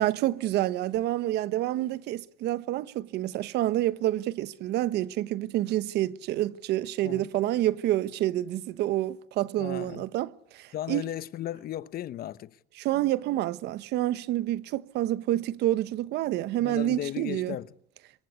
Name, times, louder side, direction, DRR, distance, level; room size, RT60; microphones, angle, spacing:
voice 1, 0.0-11.1 12.8-17.6, right 14 dB, 80° right, 1.1 m, -28 dB
voice 2, 9.6-10.0 10.7-12.6 16.6-17.7, left 12 dB, 65° left, 1.0 m, -36 dB
26.5 x 23.5 x 9.6 m
cardioid pair, 110°, 17 cm